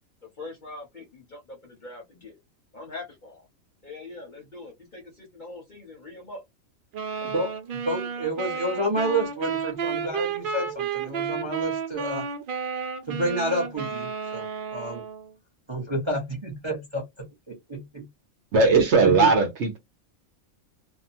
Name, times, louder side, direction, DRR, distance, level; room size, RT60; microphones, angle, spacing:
voice 1, 0.4-2.4 2.7-3.5 3.8-6.4, left 2 dB, 40° left, 0.8 m, -42 dB
sound 1, 6.9-15.3, right 6 dB, 90° right, 0.4 m, -32 dB
voice 2, 7.2-12.2 13.1-14.5 14.7-15.0 15.7-18.1 19.0-19.3, right 1 dB, 25° right, 0.6 m, -30 dB
voice 3, 18.5-19.8, right 4 dB, 60° right, 1.0 m, -18 dB
2.7 x 2.2 x 2.7 m
omnidirectional pair, 1.5 m